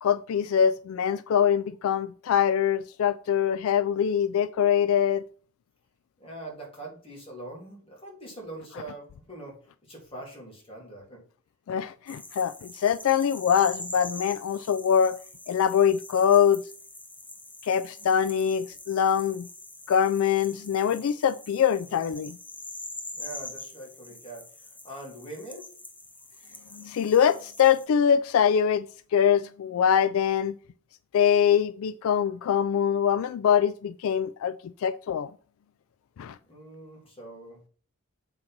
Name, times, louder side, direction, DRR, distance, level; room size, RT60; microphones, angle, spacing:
voice 1, 0.0-5.2 11.7-15.2 15.5-16.6 17.6-19.5 19.9-22.4 26.7-28.8 29.1-30.5 31.1-34.5 34.8-35.3 36.2-36.4, left 8 dB, 70° left, 0.3 m, -23 dB
voice 2, 6.2-11.2 23.1-25.7 36.4-37.7, right 1 dB, 25° left, 2.6 m, -43 dB
sound 1, 12.1-27.9, left 2 dB, 5° left, 0.6 m, -44 dB
7.4 x 3.8 x 5.9 m
head